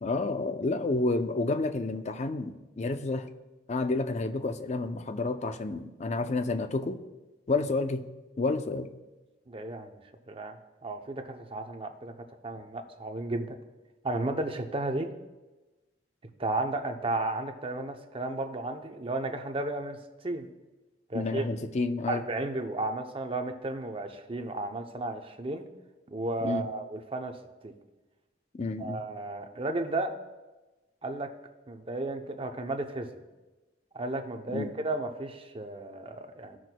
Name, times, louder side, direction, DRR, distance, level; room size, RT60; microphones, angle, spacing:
voice 1, 0.0-3.3 3.7-7.0 7.5-8.1 8.4-8.9 21.1-22.2 26.4-26.7 28.6-29.0 34.5-34.7, left 3 dB, 40° left, 9 dB, 0.5 m, -30 dB
voice 2, 9.5-10.0 10.3-10.6 10.8-12.1 12.4-13.6 14.0-15.1 16.4-20.0 20.2-20.5 21.1-21.5 22.1-25.7 26.1-27.3 27.6-27.7 28.8-30.1 31.0-31.3 31.7-33.2 33.9-36.6, right 2 dB, 30° right, 5 dB, 0.6 m, -33 dB
15.0 x 6.1 x 2.2 m, 1.1 s
head